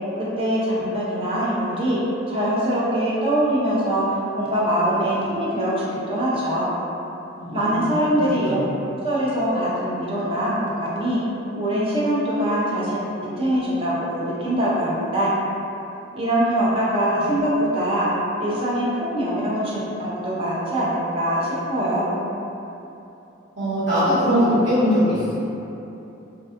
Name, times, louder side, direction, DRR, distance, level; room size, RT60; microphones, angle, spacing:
voice 1, 0.2-2.0 2.3-6.7 7.5-8.6 9.0-11.2 11.6-13.0 13.4-15.3 16.1-18.1 18.4-22.1, right 1 dB, 30° right, -7 dB, 0.5 m, -23 dB
voice 2, 7.4-7.8 8.1-8.2 8.5-8.6 17.2-17.3 23.6-25.4, equal, 60° right, -13 dB, 1.1 m, -21 dB
2.6 x 2.2 x 2.4 m, 2.9 s
head